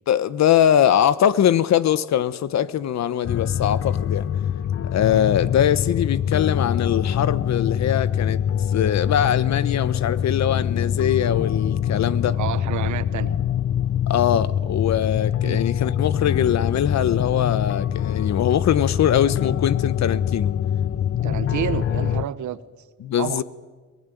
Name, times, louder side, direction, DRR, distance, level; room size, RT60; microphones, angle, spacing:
voice 1, 0.1-4.3 4.9-8.4 8.7-12.4 14.1-20.5 23.0-23.4, left 10 dB, 65° left, 1.1 m, -22 dB
sound 1, 3.2-22.2, left 9 dB, 50° left, 0.8 m, -24 dB
voice 2, 12.4-13.4 15.4-15.6 21.2-22.6 23.2-23.4, right 11 dB, 70° right, 1.3 m, -29 dB
22.5 x 21.0 x 9.3 m
cardioid pair, 90°, 30 cm